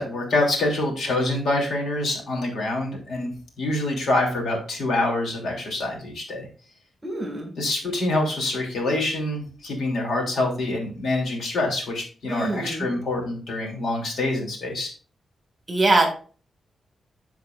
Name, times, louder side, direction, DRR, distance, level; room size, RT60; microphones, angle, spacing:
voice 1, 0.0-3.3 3.6-6.5 7.6-14.9, left 2 dB, 65° left, 0 dB, 2.9 m, -26 dB
voice 2, 7.0-7.5 12.3-12.9 15.7-16.1, right 2 dB, 20° right, 3 dB, 2.0 m, -23 dB
13.5 x 4.7 x 2.5 m, 0.39 s
wide cardioid pair, 155°, 0 cm